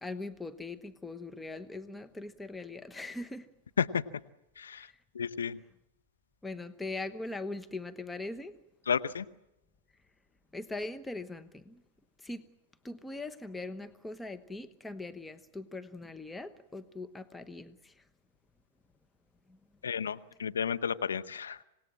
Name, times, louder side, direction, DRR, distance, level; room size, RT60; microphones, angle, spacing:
voice 1, 0.0-3.5 4.7-5.0 6.4-8.5 10.5-11.8 12.2-12.4 12.8-18.0 19.5-19.6, left 2 dB, 10° left, 1.1 m, -41 dB
voice 2, 4.6-4.9 5.1-5.6 8.9-9.3 19.8-21.6, left 7 dB, 85° left, 0.9 m, -32 dB
26.5 x 18.5 x 7.5 m
hypercardioid pair, 105°, 0 cm